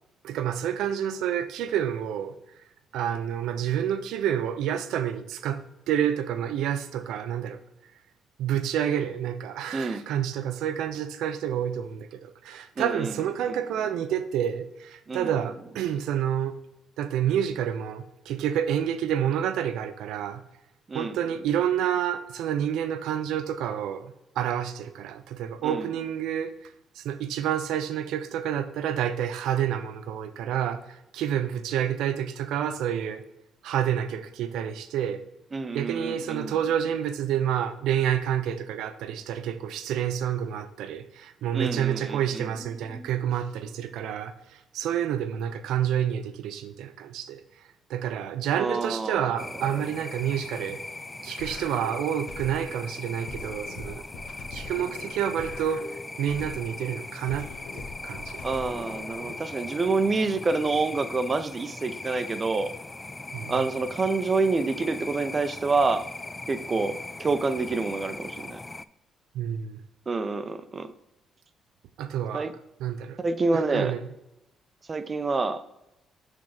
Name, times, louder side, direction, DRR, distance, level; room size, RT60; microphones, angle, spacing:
voice 1, 0.2-2.3 2.9-7.6 8.4-16.6 17.0-20.4 20.9-33.2 33.6-35.3 35.7-47.4 47.9-50.8 51.2-54.0 54.5-58.4 63.3-63.7 69.3-69.8 72.0-72.5 72.8-73.2 73.5-74.0, right 9 dB, 85° right, 0.5 m, -29 dB
voice 2, 9.7-10.0 12.8-13.1 15.1-15.3 20.9-21.1 25.6-25.9 35.5-36.5 41.5-42.5 42.9-43.1 48.6-49.3 49.6-49.7 58.4-62.7 63.5-66.0 66.5-68.6 70.1-70.9 72.3-72.5 73.2-73.9 74.9-75.6, right 3 dB, 35° right, 0.6 m, -27 dB
sound 1, 49.4-68.9, left 2 dB, 20° left, 0.3 m, -39 dB
sound 2, 51.4-52.8 53.3-56.8 57.3-59.4, left 3 dB, 80° left, 1.1 m, -42 dB
6.3 x 3.6 x 5.9 m
cardioid pair, 90°, 0 cm